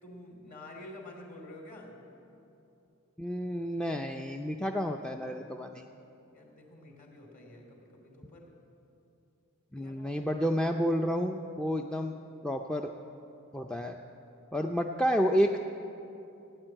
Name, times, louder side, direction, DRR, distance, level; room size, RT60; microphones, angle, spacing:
voice 1, 0.0-2.0 6.3-8.6 9.8-10.1, left 1 dB, 40° left, 1 dB, 2.8 m, -49 dB
voice 2, 3.2-5.8 9.7-12.1 12.4-12.9 13.5-14.0 14.5-15.6, equal, 5° left, 3 dB, 0.4 m, -30 dB
16.5 x 9.7 x 8.9 m, 2.8 s
head